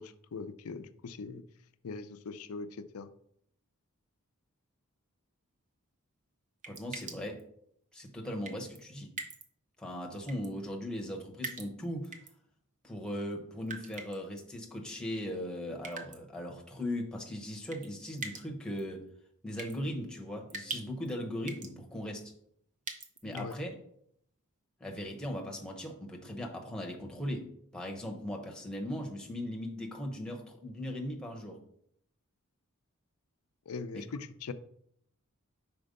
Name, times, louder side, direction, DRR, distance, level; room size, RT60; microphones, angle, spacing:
voice 1, 0.0-1.4 1.8-3.1 23.2-23.5 33.7-34.5, left 4 dB, 80° left, 11 dB, 0.5 m, -41 dB
sound 1, 6.6-7.4 8.5-8.8 9.2-9.5 10.3-10.5 11.4-12.3 13.7-14.4 15.8-16.2 17.7-17.9 18.2-18.4 18.8-18.9 19.6-19.7 20.5-21.1 21.5-21.7 22.9-23.5, right 4 dB, 35° right, 0.7 m, -42 dB
voice 2, 6.7-7.4 7.9-9.1 9.8-12.1 12.8-19.1 19.4-22.3 23.2-23.7 24.8-31.6 33.9-34.0, left 1 dB, 5° left, 0 dB, 0.9 m, -38 dB
5.1 x 4.4 x 5.2 m, 0.70 s
head